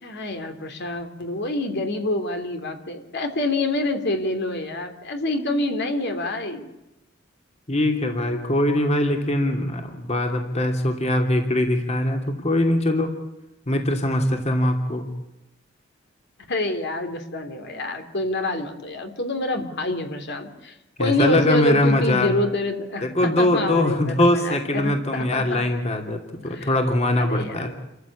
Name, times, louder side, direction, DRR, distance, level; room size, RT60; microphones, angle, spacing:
voice 1, 0.0-6.7 16.5-25.6 26.4-26.7 27.2-27.7, left 2 dB, 60° left, 6 dB, 3.1 m, -27 dB
voice 2, 7.7-13.1 13.7-15.1 21.0-22.3 23.0-27.7, left 1 dB, 35° left, 3 dB, 2.8 m, -22 dB
28.5 x 15.0 x 8.6 m, 0.95 s
head